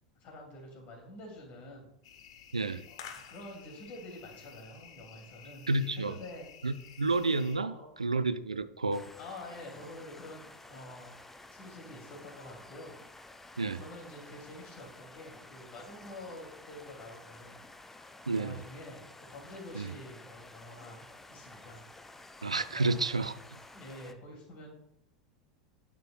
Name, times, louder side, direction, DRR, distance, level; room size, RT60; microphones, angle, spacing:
voice 1, 0.2-1.9 2.9-6.5 7.5-7.9 9.2-11.2 11.5-13.0 13.6-17.6 18.0-21.9 22.7-23.2 23.7-24.7, left 1 dB, 40° left, 2.6 m, -48 dB
sound 1, 2.0-7.6, left 8 dB, 60° left, 0.8 m, -52 dB
voice 2, 2.5-2.8 5.7-6.2 6.6-9.1 13.6-13.8 18.3-18.6 19.7-19.9 22.4-23.3, right 3 dB, 80° right, 0.3 m, -30 dB
sound 2, 8.9-24.1, left 2 dB, 10° left, 0.5 m, -52 dB
9.6 x 5.8 x 2.3 m
figure-of-eight pair, 80°, 3 cm